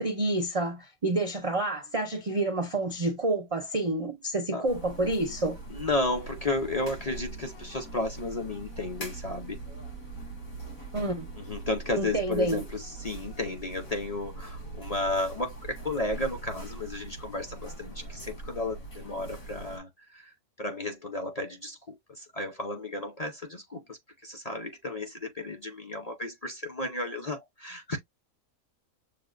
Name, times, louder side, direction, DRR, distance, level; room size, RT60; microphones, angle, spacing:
voice 1, 0.0-5.6 10.9-11.2 12.0-12.6, right 2 dB, 45° right, 0.4 m, -28 dB
sound 1, 4.6-19.8, right 2 dB, 70° left, 2.6 m, -42 dB
voice 2, 5.7-9.6 11.4-20.3 20.6-28.0, left 2 dB, 35° left, 0.6 m, -33 dB
6.8 x 2.3 x 2.4 m
omnidirectional pair, 1.5 m